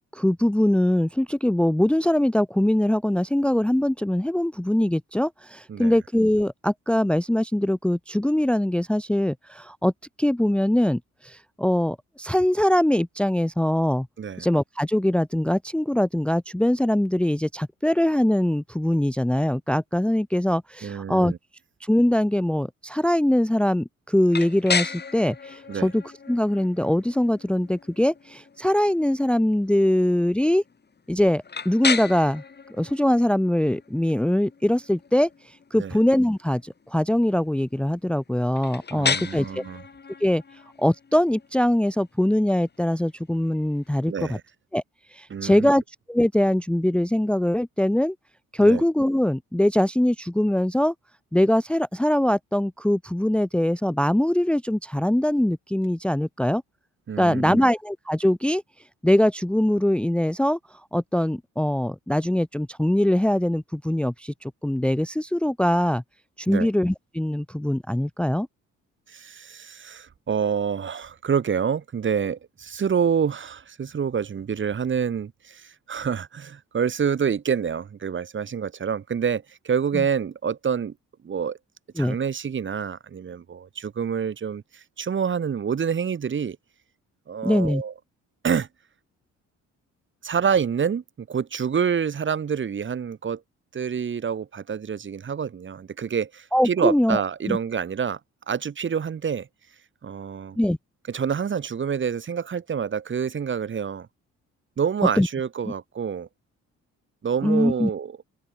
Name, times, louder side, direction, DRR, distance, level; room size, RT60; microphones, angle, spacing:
voice 1, 0.1-9.9 10.2-14.1 14.4-21.3 21.8-26.0 26.3-30.6 31.1-32.4 32.8-39.6 40.2-40.4 40.8-44.4 44.7-44.8 45.1-45.8 46.1-48.1 48.5-50.9 51.3-56.6 57.2-58.6 59.0-60.6 60.9-66.0 66.4-68.5 79.9-80.0 82.0-82.2 87.4-87.8 96.5-97.2 97.5-97.6 100.6-100.8 105.2-105.3 107.4-107.9, left 1 dB, 5° left, 0.7 m, -22 dB
voice 2, 20.8-21.4 25.7-25.9 35.7-36.0 38.9-39.8 44.1-44.4 45.3-45.7 48.6-48.8 57.1-57.7 66.5-66.7 69.1-80.9 81.2-81.6 82.0-86.6 87.3-87.9 88.4-88.7 90.2-93.4 93.7-98.2 98.5-99.5 100.0-100.6 101.1-104.1 104.8-106.3 107.2-108.1, right 7 dB, 40° right, 1.5 m, -27 dB
sound 1, 24.3-44.1, left 5 dB, 35° left, 3.1 m, -35 dB
open air
cardioid pair, 90°, 30 cm